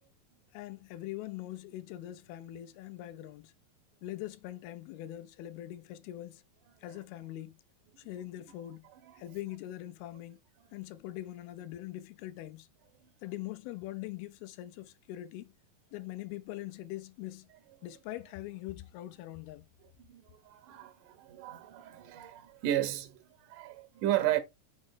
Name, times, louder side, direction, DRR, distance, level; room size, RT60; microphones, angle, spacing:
voice 1, 0.5-3.5 4.0-6.4 6.8-7.5 8.0-8.9 9.2-10.4 10.7-12.7 13.2-15.5 15.9-17.5 17.8-19.6, left 14 dB, 80° left, 2.4 m, -42 dB
voice 2, 20.1-23.2 23.5-24.4, right 13 dB, 70° right, 2.2 m, -33 dB
6.3 x 5.3 x 3.6 m
omnidirectional pair, 4.8 m